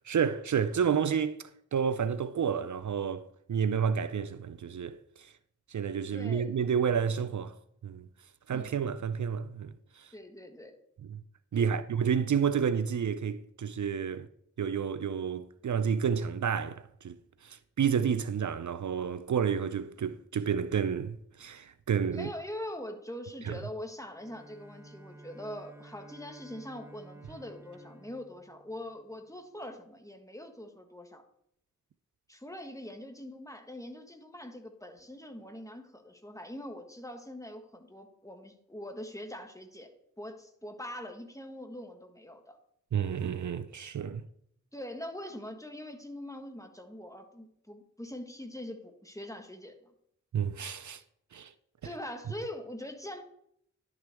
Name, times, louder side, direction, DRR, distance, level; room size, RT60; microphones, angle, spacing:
voice 1, 0.0-1.4 1.7-5.3 5.7-7.6 7.8-8.1 8.5-10.1 11.1-11.2 11.5-14.3 14.6-22.3 23.4-23.6 42.9-44.2 50.3-51.0 51.3-51.5, right 7 dB, 70° right, 0.4 m, -30 dB
voice 2, 6.1-6.5 8.5-8.7 10.1-10.7 11.5-11.8 22.1-31.2 32.3-39.9 40.2-42.6 44.7-49.9 51.8-53.2, left 1 dB, 10° left, 1.3 m, -43 dB
Bowed string instrument, 24.1-29.3, right 2 dB, 10° right, 0.6 m, -53 dB
11.0 x 6.4 x 3.4 m
wide cardioid pair, 40°, 31 cm